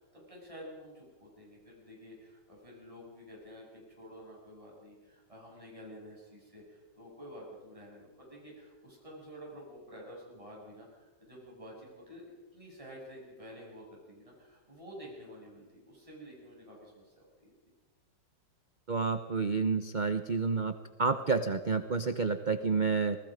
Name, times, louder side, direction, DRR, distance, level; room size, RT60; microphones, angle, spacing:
voice 1, 0.0-12.2 12.5-17.5, equal, 15° right, -3 dB, 7.3 m, -50 dB
voice 2, 18.9-20.7 21.0-23.2, right 4 dB, 45° right, 9 dB, 0.6 m, -29 dB
27.0 x 20.0 x 5.2 m, 1.1 s
omnidirectional pair, 2.2 m